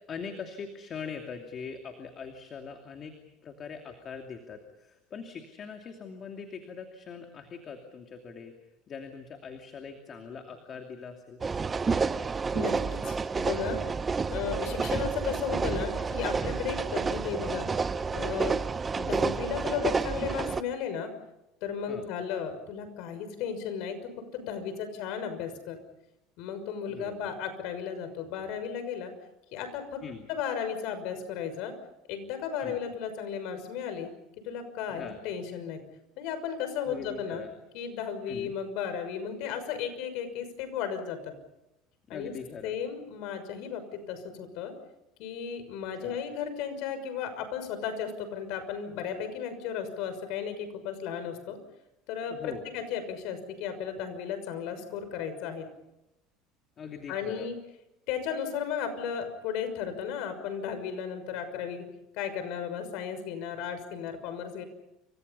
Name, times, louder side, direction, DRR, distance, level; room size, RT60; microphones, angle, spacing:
voice 1, 0.1-3.1 3.4-8.5 8.9-11.4 14.8-15.0 21.9-22.1 26.9-27.3 30.0-30.3 32.6-32.8 34.9-35.2 36.8-37.5 38.3-38.5 42.1-42.8 46.0-46.2 52.3-52.7 56.8-57.5, left 6 dB, 30° left, 4 dB, 2.7 m, -42 dB
sound 1, 11.4-20.6, right 5 dB, 20° right, 0.8 m, -30 dB
voice 2, 12.5-13.8 14.3-17.7 18.1-18.5 18.9-21.1 21.6-24.0 24.3-25.8 26.4-29.1 29.5-30.0 30.3-31.7 32.1-34.1 34.4-35.8 36.2-37.4 37.7-41.3 42.1-42.3 42.6-44.7 45.2-51.6 52.1-55.7 57.1-57.6 58.1-61.8 62.1-64.6, left 7 dB, 65° left, 9 dB, 6.1 m, -34 dB
29.5 x 26.5 x 5.6 m, 0.89 s
cardioid pair, 145°, 0 cm